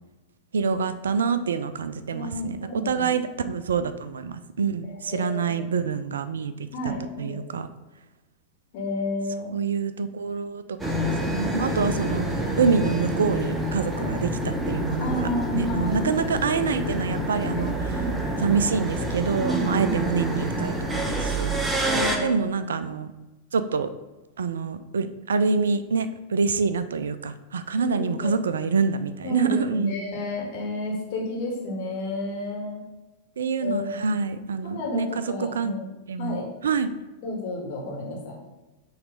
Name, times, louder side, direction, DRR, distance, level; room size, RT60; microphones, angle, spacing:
voice 1, 0.5-3.2 3.5-6.7 7.2-7.7 9.5-15.1 15.5-17.7 18.4-21.8 22.2-23.1 23.5-23.9 24.4-30.0 33.4-35.1 35.6-35.7 36.1-36.9, right 5 dB, 65° right, 12 dB, 0.4 m, -26 dB
voice 2, 2.1-3.1 3.3-3.5 4.9-5.6 6.7-7.4 8.7-9.5 12.8-13.0 13.9-14.1 15.0-16.1 17.4-18.1 19.4-19.9 20.5-20.7 21.8-22.5 27.8-28.7 29.2-32.9 33.6-34.0 34.6-35.9 36.2-36.5 37.2-38.4, left 1 dB, 50° left, -1 dB, 1.7 m, -31 dB
sound 1, 10.8-22.2, right 1 dB, 10° right, 0.8 m, -27 dB
5.8 x 3.2 x 5.1 m, 1.1 s
figure-of-eight pair, 90°, 0 cm